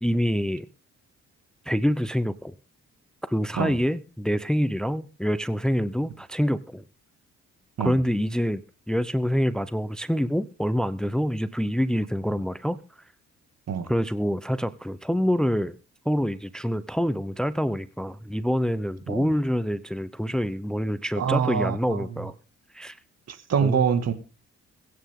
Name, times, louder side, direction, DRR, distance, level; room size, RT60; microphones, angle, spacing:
voice 1, 0.0-0.7 1.7-2.5 3.3-6.8 7.8-8.6 8.9-12.8 13.8-15.8 16.0-22.3 22.7-23.0 23.6-23.8, equal, ahead, 0.8 m, -26 dB
voice 2, 21.2-22.0 23.3-24.1, right 7 dB, 55° right, 2.2 m, -25 dB
22.5 x 9.2 x 3.8 m
cardioid pair, 90°, 30 cm